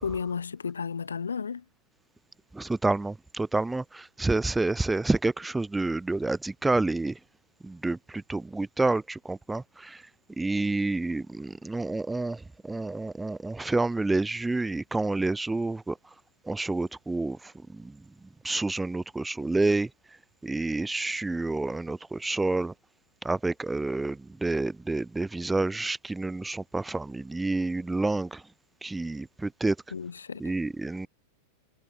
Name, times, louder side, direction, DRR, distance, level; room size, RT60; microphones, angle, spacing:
voice 1, 0.0-1.6 29.9-30.5, left 6 dB, 70° left, 2.4 m, -33 dB
voice 2, 2.5-7.2 7.6-10.1 10.4-16.0 16.4-18.0 18.4-19.9 20.4-22.7 23.2-28.4 28.8-29.8 30.4-31.1, right 2 dB, 10° right, 1.5 m, -29 dB
figure-of-eight pair, 90°, 0 cm